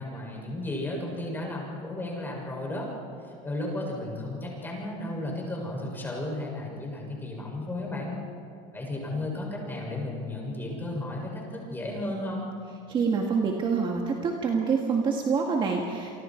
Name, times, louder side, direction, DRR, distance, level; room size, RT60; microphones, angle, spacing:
voice 1, 0.0-2.9 3.2-8.1 8.7-12.5, left 1 dB, 10° left, -1 dB, 6.9 m, -34 dB
voice 2, 12.9-16.2, right 5 dB, 30° right, 1 dB, 2.0 m, -26 dB
29.0 x 24.5 x 4.7 m, 2.4 s
supercardioid pair, 140°, 17 cm